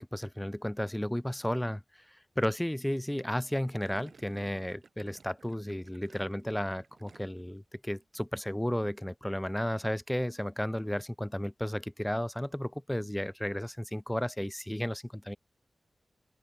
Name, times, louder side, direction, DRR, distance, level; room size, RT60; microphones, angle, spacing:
voice 1, 0.0-15.4, left 1 dB, 10° left, 0.8 m, -33 dB
Gurgling, 3.8-7.6 7.9-8.3, right 4 dB, 70° right, 7.0 m, -58 dB
open air
wide cardioid pair, 65°, 0 cm